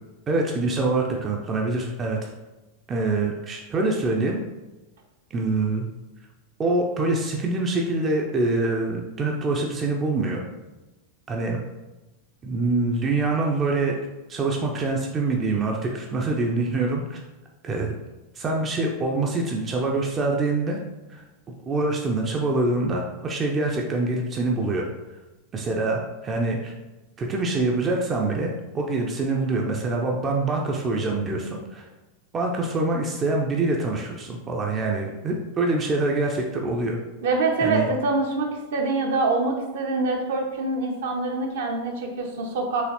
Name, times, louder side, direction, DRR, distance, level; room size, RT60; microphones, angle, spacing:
voice 1, 0.3-2.3 2.9-4.4 5.3-5.9 6.6-10.4 11.3-11.6 12.4-14.0 14.3-17.2 17.6-18.0 18.3-20.8 21.1-21.2 21.6-24.9 25.5-26.7 27.2-31.8 32.3-37.0 37.6-37.9, right 2 dB, 25° right, 0 dB, 0.5 m, -25 dB
voice 2, 37.2-42.8, right 3 dB, 60° right, 1 dB, 0.8 m, -25 dB
4.8 x 3.1 x 2.9 m, 1.1 s
figure-of-eight pair, 90°, 0 cm